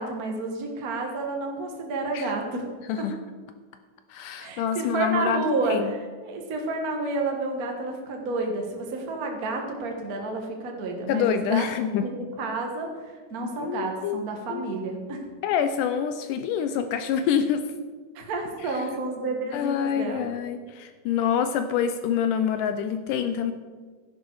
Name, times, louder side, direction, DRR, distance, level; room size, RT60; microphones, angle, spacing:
voice 1, 0.0-2.7 3.0-3.1 4.4-11.7 12.0-15.2 18.1-20.3, right 3 dB, 55° right, 2 dB, 1.0 m, -30 dB
voice 2, 4.1-5.9 11.1-12.1 13.6-14.2 14.5-14.7 15.4-17.6 18.6-18.8 19.5-23.5, left 8 dB, 80° left, 9 dB, 2.0 m, -26 dB
12.0 x 11.0 x 4.7 m, 1.5 s
omnidirectional pair, 4.0 m